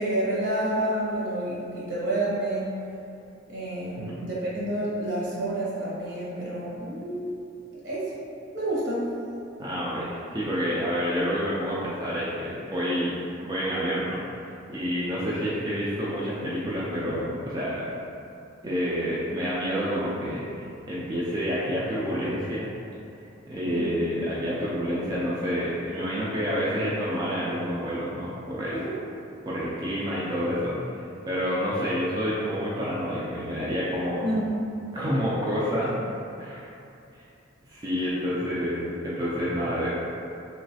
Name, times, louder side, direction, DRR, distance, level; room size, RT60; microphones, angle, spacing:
voice 1, 0.0-2.7 3.5-7.3 7.8-8.1 8.5-9.1 23.7-23.8 28.7-28.9 34.2-34.5 35.8-35.9, right 1 dB, 65° right, -7 dB, 0.9 m, -29 dB
voice 2, 9.6-13.1 13.4-14.2 14.7-17.8 18.6-22.7 23.2-28.8 29.5-34.2 34.9-35.9 36.4-36.7 37.2-37.3 37.7-39.9, equal, 20° right, -8 dB, 0.3 m, -28 dB
3.0 x 3.0 x 2.7 m, 2.6 s
head